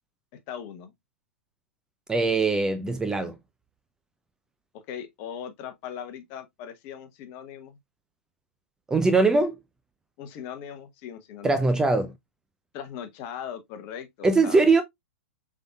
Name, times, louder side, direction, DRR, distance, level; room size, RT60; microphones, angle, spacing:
voice 1, 0.5-0.9 4.7-7.8 10.2-11.7 12.7-14.6, left 8 dB, 40° left, 0.9 m, -39 dB
voice 2, 2.1-3.3 8.9-9.6 11.4-12.1 14.2-14.8, right 3 dB, 10° right, 0.4 m, -21 dB
5.1 x 3.7 x 2.3 m
figure-of-eight pair, 110°, 7 cm